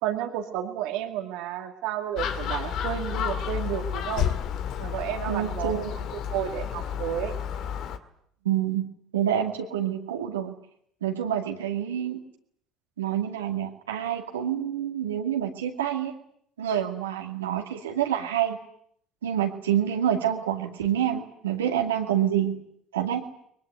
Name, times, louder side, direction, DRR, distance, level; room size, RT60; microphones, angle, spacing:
voice 1, 0.0-4.3 4.8-6.0 6.3-7.4, right 11 dB, 65° right, 5 dB, 2.1 m, -31 dB
Gull seagull, 2.2-8.0, left 8 dB, 55° left, 1.8 m, -31 dB
voice 2, 5.3-6.0 8.4-8.9 9.1-10.5 11.0-12.2 13.0-16.1 16.6-18.6 19.2-22.6 22.9-23.2, right 10 dB, 80° right, 3 dB, 2.4 m, -27 dB
22.5 x 22.0 x 9.3 m, 0.68 s
figure-of-eight pair, 60°, 0 cm